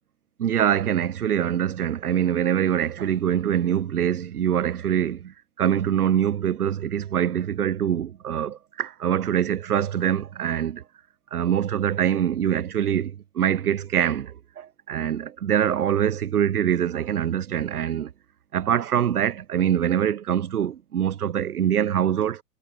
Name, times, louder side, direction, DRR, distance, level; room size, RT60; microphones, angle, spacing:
voice 1, 0.4-10.8 11.3-18.1 18.5-22.4, right 9 dB, 65° right, 3.0 m, -24 dB
figure-of-eight pair, 115°, 49 cm